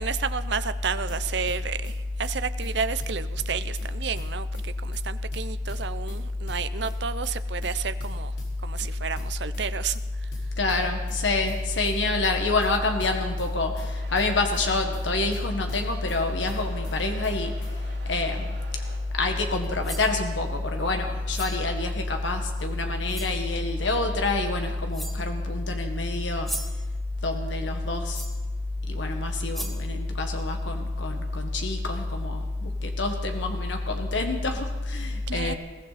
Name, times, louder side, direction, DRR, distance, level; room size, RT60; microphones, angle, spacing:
voice 1, 0.0-8.3 8.6-10.3 35.3-35.5, right 6 dB, 70° right, 12 dB, 0.6 m, -31 dB
sound 1, 0.8-1.2 1.5-2.0 2.2-2.4 2.6-2.7 3.0-3.9 4.2-4.7 4.9-5.0 5.3-6.2 6.5-7.0 7.2-7.4 7.6-7.7 8.0-8.9 9.2-9.7 9.9-10.0 10.3-11.2 11.5-12.0 12.2-12.4 12.6-12.7 13.0-13.9 14.2-14.7 14.9-15.0 15.3-16.2 16.5-17.0 17.2-17.4 17.6-17.7, left 2 dB, 65° left, 4.8 m, -47 dB
voice 2, 10.6-17.5 18.0-18.6 19.1-26.5 27.2-28.2 28.9-35.5, left 2 dB, 85° left, 4 dB, 1.5 m, -27 dB
sound 2, 13.7-19.0, right 2 dB, 90° right, 5.4 m, -48 dB
sound 3, 19.6-20.1 21.3-21.7 22.6-22.7 23.1-23.4 24.5-24.6 24.9-25.3 26.2-26.9 28.1-28.5 29.1-29.2 29.5-29.9, right 1 dB, ahead, 1.1 m, -37 dB
21.5 x 16.0 x 4.2 m, 1.3 s
head